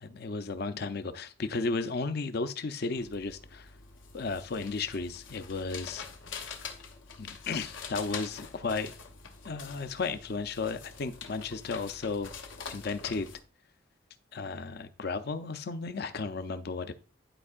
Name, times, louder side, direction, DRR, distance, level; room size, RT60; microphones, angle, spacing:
voice 1, 0.0-3.7 4.1-6.0 7.2-8.9 9.5-12.3 12.7-13.3 14.3-16.9, left 4 dB, 55° left, 0.5 m, -34 dB
sound 1, 3.0-13.4, left 5 dB, 85° left, 0.9 m, -45 dB
11.0 x 4.4 x 2.4 m
head